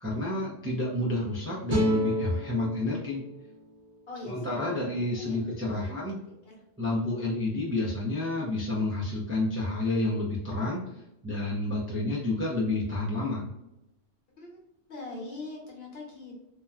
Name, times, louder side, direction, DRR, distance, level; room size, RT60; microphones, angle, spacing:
voice 1, 0.0-3.2 4.2-6.2 6.8-10.8 11.2-13.5, left 2 dB, 20° right, -6 dB, 0.3 m, -29 dB
sound 1, 1.7-4.9, right 1 dB, 65° right, 1.1 m, -34 dB
voice 2, 4.1-5.4 5.7-5.9 6.4-6.5 14.4-14.5 14.9-16.3, left 2 dB, 65° left, -2 dB, 1.1 m, -42 dB
2.8 x 2.2 x 2.3 m, 0.86 s
omnidirectional pair, 1.1 m